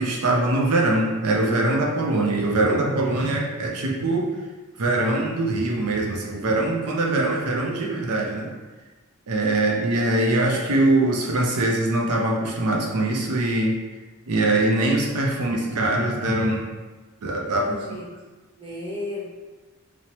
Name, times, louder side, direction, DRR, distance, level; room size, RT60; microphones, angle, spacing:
voice 1, 0.0-4.3 4.8-8.5 9.3-13.8 14.3-16.7 17.2-18.0, right 2 dB, 85° right, -1 dB, 0.5 m, -22 dB
voice 2, 17.4-18.1 18.6-19.3, left 2 dB, 25° right, -7 dB, 0.7 m, -35 dB
3.1 x 2.0 x 2.8 m, 1.3 s
head